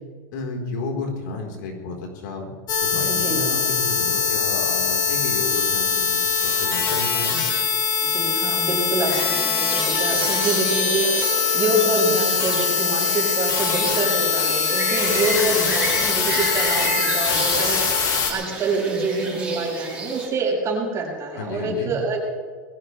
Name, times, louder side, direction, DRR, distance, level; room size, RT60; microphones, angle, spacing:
voice 1, 0.3-2.5 2.8-7.3 21.4-21.9, left 3 dB, 75° left, 1 dB, 4.4 m, -32 dB
sound 1, 2.7-18.3, left 6 dB, 40° left, 3.0 m, -22 dB
voice 2, 3.1-3.6 7.3-7.4 8.0-22.2, right 2 dB, 25° right, -2 dB, 6.1 m, -26 dB
sound 2, 9.1-20.3, right 2 dB, 10° right, 6.2 m, -31 dB
21.5 x 15.5 x 3.4 m, 1.5 s
supercardioid pair, 135°, 10 cm